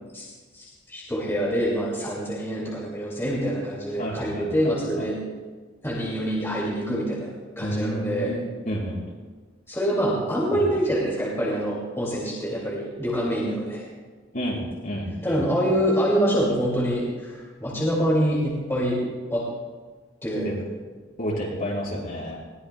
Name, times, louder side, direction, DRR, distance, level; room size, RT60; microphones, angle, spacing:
voice 1, 0.5-5.2 5.8-7.3 7.6-8.4 9.7-13.9 15.2-19.0 19.3-19.4 20.2-20.5, equal, 15° left, -6 dB, 2.3 m, -25 dB
voice 2, 4.0-5.0 7.6-9.0 10.5-10.6 14.3-15.4 15.7-15.8 20.4-20.5 21.2-22.4, equal, 45° left, -5 dB, 4.5 m, -30 dB
20.5 x 16.5 x 2.2 m, 1.4 s
head